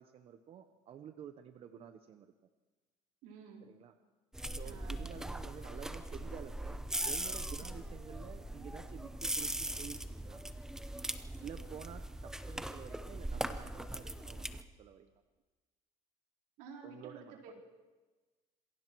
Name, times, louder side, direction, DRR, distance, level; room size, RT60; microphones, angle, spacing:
voice 1, 0.0-2.3 3.6-3.9 4.5-10.5 11.4-15.1 16.8-17.4, right 9 dB, 45° right, 9 dB, 1.0 m, -50 dB
voice 2, 3.2-3.7 4.6-5.0 16.6-17.6, right 5 dB, 85° right, 0 dB, 4.5 m, -51 dB
sound 1, 4.3-14.6, right 1 dB, 5° right, 0.8 m, -40 dB
27.0 x 22.0 x 4.7 m, 1.3 s
cardioid pair, 150°, 14 cm